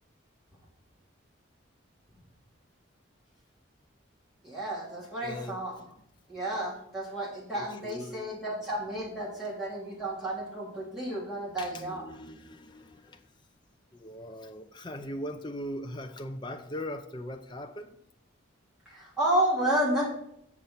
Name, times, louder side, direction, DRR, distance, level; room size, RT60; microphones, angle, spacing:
voice 1, 4.4-5.7 6.3-12.0 18.8-20.1, right 1 dB, ahead, 3.3 m, -31 dB
voice 2, 5.2-5.6 7.5-8.2 11.6-13.2 13.9-18.0, left 1 dB, 20° left, 0.6 m, -40 dB
7.2 x 6.5 x 5.6 m
head